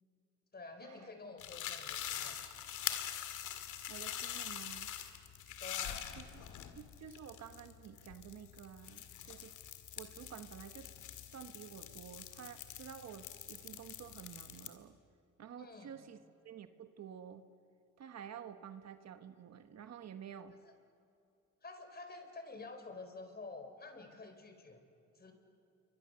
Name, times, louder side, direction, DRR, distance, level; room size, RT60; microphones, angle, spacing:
voice 1, 0.5-2.4 5.6-6.1 8.8-8.9 15.6-16.0 20.6-20.7 21.6-24.9 25.2-25.3, left 3 dB, 30° left, 7 dB, 4.3 m, -49 dB
sound 1, 1.4-14.7, left 10 dB, 80° left, 2.0 m, -44 dB
voice 2, 3.9-4.9 6.2-6.4 6.7-9.5 10.0-10.9 11.3-15.0 15.4-17.5 18.0-20.6, right 8 dB, 60° right, 9 dB, 1.4 m, -51 dB
28.0 x 24.0 x 6.9 m, 2.7 s
cardioid pair, 90°, 30 cm